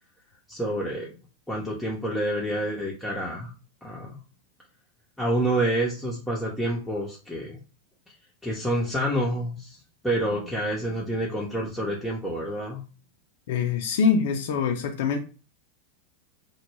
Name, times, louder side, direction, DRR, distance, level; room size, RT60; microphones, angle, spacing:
voice 1, 0.5-1.1 1.5-3.5 3.8-4.2 5.2-7.6 8.4-9.8 10.0-12.8, right 1 dB, 5° left, 0.6 m, -28 dB
voice 2, 13.5-15.2, left 6 dB, 55° left, 0.4 m, -24 dB
2.2 x 2.1 x 3.2 m
figure-of-eight pair, 90°, 0 cm